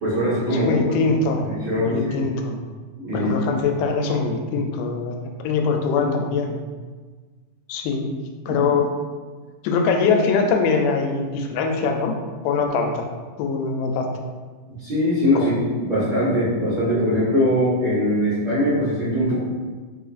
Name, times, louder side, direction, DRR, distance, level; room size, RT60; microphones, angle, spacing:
voice 1, 0.0-0.7 1.0-1.1 1.4-2.3 3.0-3.3 8.5-8.6 14.8-19.4, equal, 50° right, -14 dB, 1.2 m, -21 dB
voice 2, 0.5-1.5 1.8-2.6 3.1-5.2 5.4-6.5 7.7-8.1 8.5-8.9 9.6-12.2 12.4-13.1 13.4-14.1 15.4-15.6, left 4 dB, 90° left, 3 dB, 2.1 m, -22 dB
4.1 x 3.8 x 2.5 m, 1.5 s
omnidirectional pair, 3.6 m